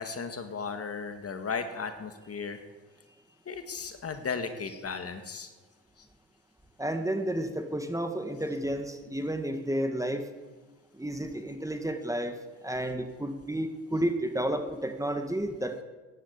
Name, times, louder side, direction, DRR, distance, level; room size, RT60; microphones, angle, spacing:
voice 1, 0.0-2.6 3.5-5.5 6.0-6.1, left 5 dB, 45° left, 7 dB, 2.0 m, -35 dB
voice 2, 6.8-10.3 10.9-15.8, right 1 dB, 10° right, 6 dB, 1.9 m, -31 dB
15.0 x 11.0 x 8.4 m, 1.3 s
supercardioid pair, 70°, 35 cm